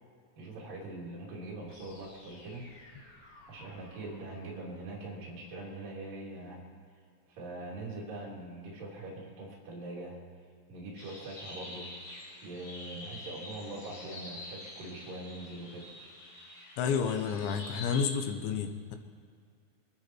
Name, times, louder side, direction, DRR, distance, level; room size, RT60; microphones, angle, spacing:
voice 1, 0.4-2.7 3.5-6.8 7.3-10.2 10.7-12.0 12.4-15.9, right 2 dB, 55° right, -4 dB, 4.4 m, -42 dB
sound 1, 1.6-5.6, left 2 dB, 65° left, 5.0 m, -57 dB
sound 2, 11.0-18.1, left 1 dB, 45° left, 6.8 m, -46 dB
voice 2, 16.8-19.0, left 6 dB, 85° left, 7 dB, 3.3 m, -30 dB
24.5 x 13.0 x 4.6 m, 2.1 s
omnidirectional pair, 5.1 m